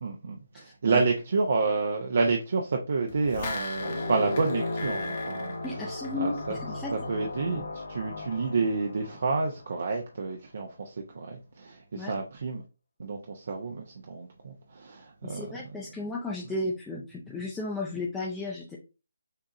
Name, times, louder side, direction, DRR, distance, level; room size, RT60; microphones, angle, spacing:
voice 1, 0.0-5.9 6.1-6.6 6.9-12.6 13.0-15.9, right 4 dB, 55° right, 0.7 m, -29 dB
voice 2, 0.5-1.0 5.6-6.9 12.0-12.1 15.2-18.8, left 2 dB, 5° left, 0.6 m, -34 dB
sound 1, 3.1-6.6 6.9-7.0, left 3 dB, 40° left, 1.0 m, -39 dB
sound 2, 3.7-9.9, left 2 dB, 65° left, 1.2 m, -35 dB
6.6 x 2.5 x 2.9 m
figure-of-eight pair, 150°, 0 cm